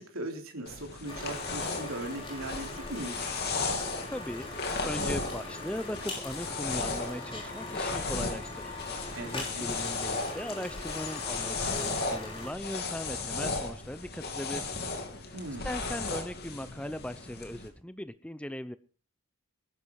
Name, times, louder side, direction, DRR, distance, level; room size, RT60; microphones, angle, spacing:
voice 1, 0.0-3.4 9.2-9.7 15.3-15.7, right 1 dB, 70° right, 3 dB, 3.5 m, -39 dB
sound 1, 0.7-17.7, left 3 dB, 45° left, 2.9 m, -35 dB
sound 2, 1.1-12.5, left 2 dB, 25° left, 5.6 m, -41 dB
voice 2, 4.1-14.7 15.1-15.3 15.6-18.8, left 1 dB, 5° left, 13 dB, 0.6 m, -39 dB
20.5 x 11.5 x 4.7 m, 0.39 s
head